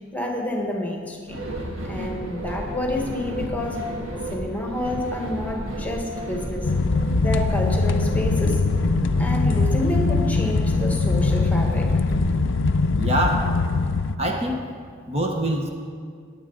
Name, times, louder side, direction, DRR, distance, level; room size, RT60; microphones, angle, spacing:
voice 1, 0.1-1.4 1.8-3.8 4.3-6.7 7.2-8.7 9.2-12.0, left 1 dB, 10° left, 1 dB, 1.4 m, -29 dB
sound 1, 1.3-12.3, equal, 85° right, 1.8 m, -33 dB
sound 2, 6.6-14.2, left 3 dB, 65° left, 0.5 m, -22 dB
voice 2, 13.0-13.5 14.2-14.6 15.1-15.7, right 1 dB, 30° right, 2 dB, 1.0 m, -24 dB
19.0 x 8.8 x 3.9 m, 2.1 s
head